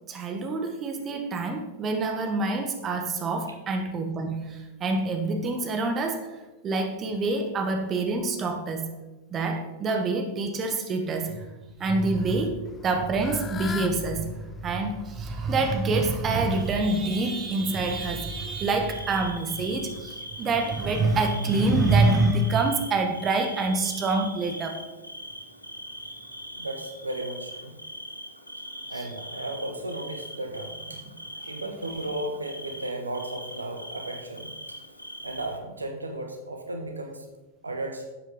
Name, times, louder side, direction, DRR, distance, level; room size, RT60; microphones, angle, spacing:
voice 1, 0.1-6.3 6.6-8.9 9.3-11.5 11.8-24.8 28.9-29.0, right 3 dB, 25° right, 5 dB, 1.3 m, -26 dB
Fowl / Bird, 12.7-18.0, left 6 dB, 20° left, 0.7 m, -43 dB
Bird / Cricket, 16.5-35.6, equal, 90° left, 0.9 m, -41 dB
voice 2, 26.5-27.8 28.9-31.0 31.5-34.5 35.2-37.2 37.6-38.1, right 1 dB, 80° right, 4 dB, 1.3 m, -34 dB
11.5 x 8.0 x 3.9 m, 1.1 s
figure-of-eight pair, 95°, 0 cm